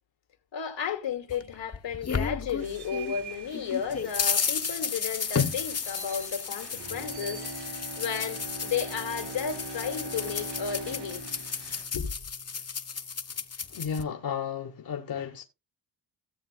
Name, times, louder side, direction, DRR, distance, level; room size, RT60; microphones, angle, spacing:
voice 1, 0.5-11.2 11.9-12.1, left 7 dB, 85° left, 2.4 m, -33 dB
sound 1, 1.3-3.1 3.5-14.0, left 6 dB, 35° left, 1.0 m, -33 dB
sound 2, 2.6-11.8, right 7 dB, 65° right, 3.3 m, -48 dB
Bowed string instrument, 6.6-12.9 13.3-13.4, right 2 dB, 80° right, 5.3 m, -41 dB
voice 2, 13.7-15.4, left 7 dB, 55° left, 1.2 m, -33 dB
17.0 x 7.1 x 2.3 m
cardioid pair, 80°, 43 cm